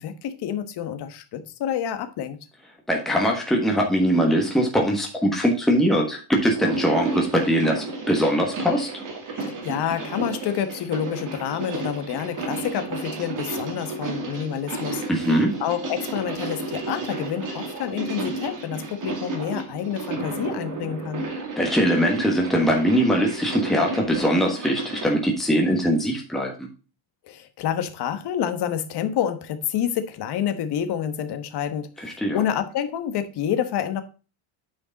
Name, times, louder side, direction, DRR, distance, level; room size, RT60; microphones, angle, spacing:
voice 1, 0.0-2.4 9.3-15.0 15.6-21.3 27.3-34.0, left 9 dB, 50° left, 1.3 m, -28 dB
voice 2, 2.9-8.9 15.1-15.6 21.3-26.7 32.0-32.4, equal, ahead, 1.4 m, -22 dB
sound 1, 6.5-25.1, right 3 dB, 40° right, 2.6 m, -32 dB
8.9 x 5.1 x 4.1 m
cardioid pair, 150°, 49 cm